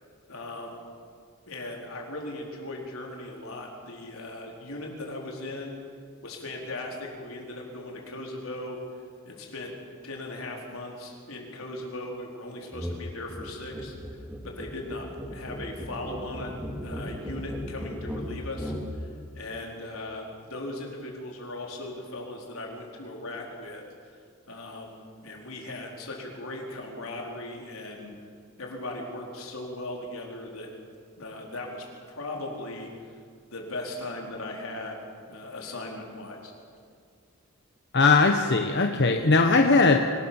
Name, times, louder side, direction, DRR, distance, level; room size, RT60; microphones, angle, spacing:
voice 1, 0.3-0.8 1.5-5.8 6.2-8.8 9.2-9.7 10.0-16.5 16.8-18.7 19.0-19.1 19.3-23.8 24.5-28.1 28.6-30.7 31.2-32.9 33.5-35.0 35.2-36.5, left 2 dB, 85° left, 0 dB, 4.5 m, -38 dB
sound 1, 12.7-13.0 13.3-18.9, equal, 5° right, 2.7 m, -36 dB
voice 2, 37.9-40.0, left 3 dB, 55° left, 4 dB, 1.2 m, -19 dB
24.5 x 18.5 x 7.2 m, 2.1 s
head